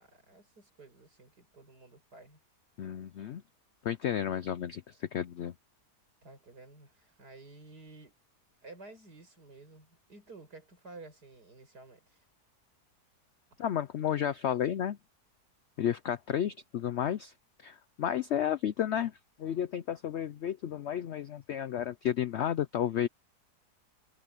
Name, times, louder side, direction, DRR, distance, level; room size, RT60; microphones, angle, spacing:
voice 1, 0.0-2.4 6.2-8.1 8.6-12.2, right 3 dB, 70° right, 6.8 m, -52 dB
voice 2, 2.8-3.4 3.8-5.5 13.6-15.0 15.8-17.3 17.6-19.1 19.4-23.1, left 10 dB, 70° left, 0.6 m, -32 dB
omnidirectional pair, 1.8 m